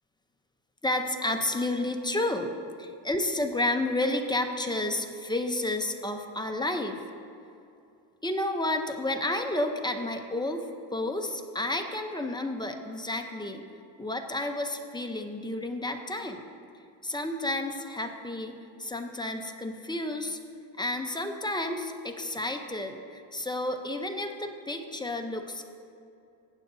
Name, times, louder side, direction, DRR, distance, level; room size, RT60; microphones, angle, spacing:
voice 1, 0.8-7.0 8.2-10.7 10.9-13.6 14.0-16.4 17.0-20.4 20.8-25.6, left 1 dB, 10° left, 4 dB, 0.7 m, -31 dB
15.5 x 8.9 x 2.7 m, 2.6 s
cardioid pair, 110°, 46 cm